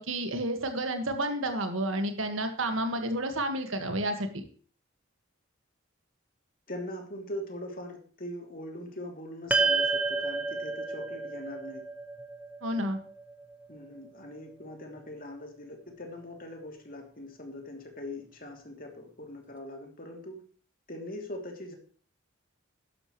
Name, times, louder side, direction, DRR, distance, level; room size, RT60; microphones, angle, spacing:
voice 1, 0.0-4.4 12.6-13.0, right 1 dB, 75° right, 6 dB, 1.9 m, -30 dB
voice 2, 6.7-11.9 13.7-20.4 20.9-21.7, left 1 dB, 45° left, 2 dB, 3.1 m, -41 dB
sound 1, 9.5-14.0, right 4 dB, 5° right, 0.8 m, -30 dB
12.0 x 11.5 x 3.2 m, 0.42 s
head